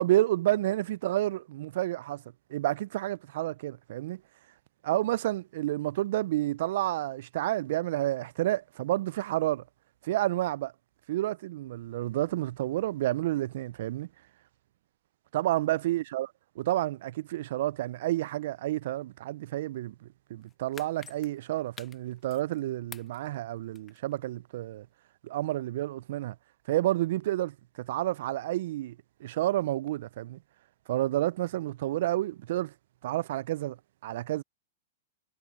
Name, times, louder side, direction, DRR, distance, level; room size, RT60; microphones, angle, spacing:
voice 1, 0.0-2.2 2.5-4.2 4.8-9.6 10.0-10.7 11.1-14.1 15.3-16.3 16.6-19.9 20.3-24.9 25.2-26.3 26.7-28.9 29.2-30.4 30.9-32.7 33.0-33.8 34.0-34.4, right 15 dB, 65° right, 0.5 m, -30 dB
sound 1, 20.4-22.6 22.9-24.2 24.5-24.6, left 7 dB, 20° left, 1.3 m, -48 dB
hypercardioid pair, 115°, 0 cm